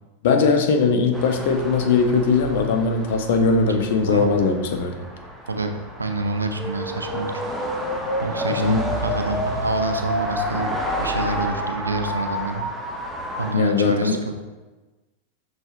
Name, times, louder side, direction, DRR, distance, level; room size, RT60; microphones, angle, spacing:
voice 1, 0.2-4.9 8.6-8.8 13.5-14.2, left 4 dB, 55° left, 5 dB, 0.5 m, -20 dB
sound 1, 1.1-13.5, right 1 dB, 10° right, 0.6 m, -33 dB
voice 2, 4.1-4.5 5.5-5.7 6.0-7.3 8.2-10.7 11.0-12.6 13.4-14.3, right 3 dB, 75° right, 6 dB, 0.4 m, -27 dB
sound 2, 6.5-13.5, left 1 dB, 30° left, 1.0 m, -29 dB
6.0 x 3.2 x 2.4 m, 1.2 s
figure-of-eight pair, 90°, 0 cm